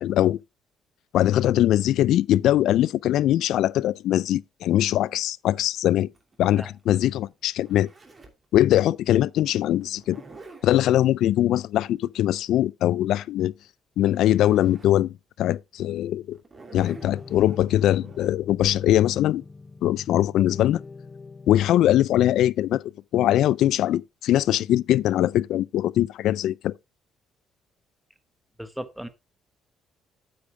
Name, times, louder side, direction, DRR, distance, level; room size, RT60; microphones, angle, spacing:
voice 1, 0.0-0.4 1.1-6.1 6.4-7.9 8.5-10.2 10.6-13.5 14.0-16.4 16.7-19.4 19.8-20.8 21.5-22.8 23.1-26.7, left 13 dB, 75° left, 0.4 m, -22 dB
Zipper (clothing), 5.8-8.5 9.8-11.1 13.7-13.8 14.0-15.0 15.5-15.6 16.3-18.3, right 3 dB, 25° right, 2.7 m, -48 dB
sound 1, 16.8-21.8, left 4 dB, 20° left, 0.5 m, -44 dB
voice 2, 28.6-29.1, equal, 5° right, 1.3 m, -36 dB
8.6 x 8.4 x 3.4 m
cardioid pair, 110°, 0 cm